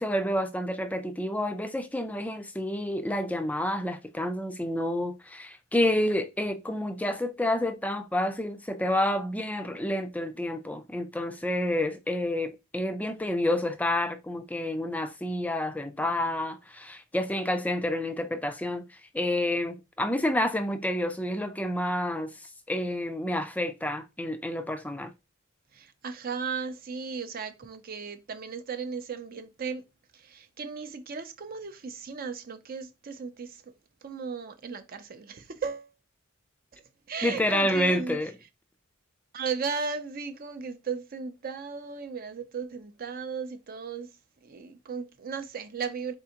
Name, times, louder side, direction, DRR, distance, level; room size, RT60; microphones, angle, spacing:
voice 1, 0.0-18.8 19.1-22.3 22.7-25.1 37.2-38.3, left 1 dB, 5° left, 0.4 m, -29 dB
voice 2, 25.7-29.8 30.1-33.7 34.0-35.9 36.7-36.8 37.1-38.2 39.3-44.1 44.4-46.1, right 5 dB, 45° right, 0.5 m, -36 dB
4.2 x 3.6 x 2.9 m
head